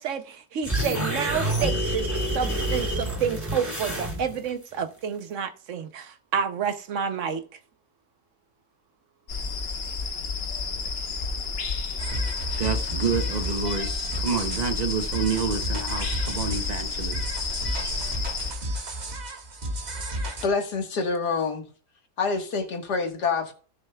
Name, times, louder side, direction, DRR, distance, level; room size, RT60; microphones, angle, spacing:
voice 1, 0.0-7.4, right 7 dB, 60° right, 0.9 m, -29 dB
sound 1, 0.6-4.5, right 1 dB, 10° right, 3.0 m, -28 dB
sound 2, 9.3-18.5, left 4 dB, 45° left, 1.0 m, -31 dB
sound 3, 12.0-20.5, equal, 30° right, 1.1 m, -33 dB
voice 2, 12.6-13.9 14.2-17.3 18.7-19.0, right 5 dB, 85° right, 0.3 m, -28 dB
voice 3, 20.4-21.7 22.2-23.5, left 4 dB, 75° left, 2.0 m, -26 dB
16.5 x 6.5 x 2.3 m
omnidirectional pair, 1.7 m